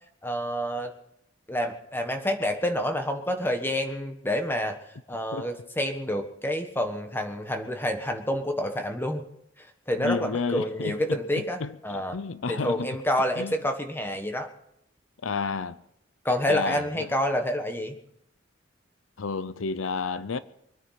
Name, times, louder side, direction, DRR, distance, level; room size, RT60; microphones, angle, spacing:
voice 1, 0.2-0.9 1.5-4.8 5.1-9.3 9.9-12.2 12.5-14.5 16.2-17.9, left 1 dB, 10° left, 1.5 m, -28 dB
voice 2, 10.0-11.2 11.6-13.0 13.4-13.5 15.2-15.8 16.5-17.1 19.2-20.4, left 4 dB, 85° left, 0.7 m, -31 dB
24.0 x 9.6 x 5.9 m
head